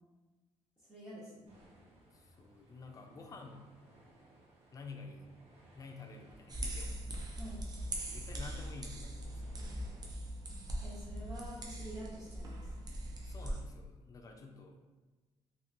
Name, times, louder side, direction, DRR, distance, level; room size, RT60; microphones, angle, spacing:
voice 1, 0.9-1.4 7.4-7.6 10.8-12.6, right 1 dB, 10° right, -12 dB, 1.1 m, -47 dB
sound 1, 1.5-10.1, right 1 dB, 60° right, 0.9 m, -61 dB
voice 2, 2.1-3.6 4.7-5.2 5.8-7.0 8.0-9.5 13.2-14.8, left 3 dB, 30° left, 3 dB, 0.4 m, -50 dB
sound 2, 6.5-13.6, right 1 dB, 35° right, 0.5 m, -41 dB
2.8 x 2.6 x 2.5 m, 1.2 s
cardioid pair, 105°, 12 cm